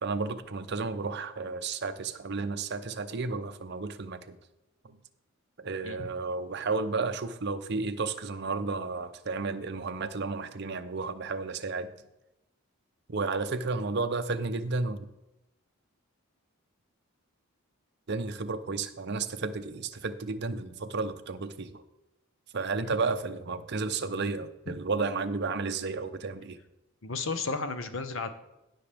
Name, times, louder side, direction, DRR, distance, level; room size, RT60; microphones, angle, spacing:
voice 1, 0.0-4.4 4.8-5.0 5.6-11.9 13.1-15.1 18.1-21.8 22.5-26.6, right 4 dB, 50° right, 9 dB, 0.6 m, -32 dB
voice 2, 27.0-28.3, left 4 dB, 60° left, 9 dB, 0.9 m, -33 dB
17.0 x 5.9 x 3.5 m, 0.93 s
head